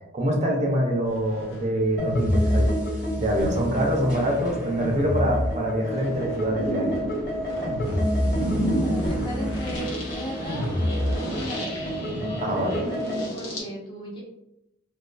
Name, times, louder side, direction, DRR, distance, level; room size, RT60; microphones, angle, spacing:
voice 1, 0.1-2.7 3.2-7.0 12.4-12.8, equal, 35° right, 0 dB, 0.4 m, -25 dB
sound 1, 1.1-3.2 3.8-4.1 4.8-13.6, equal, 90° left, 0.8 m, -32 dB
sound 2, 2.0-13.3, equal, 40° left, 1.1 m, -28 dB
voice 2, 8.8-10.7 11.0-11.9 12.1-14.2, right 1 dB, 25° left, -2 dB, 0.5 m, -37 dB
2.4 x 2.3 x 2.2 m, 0.86 s
head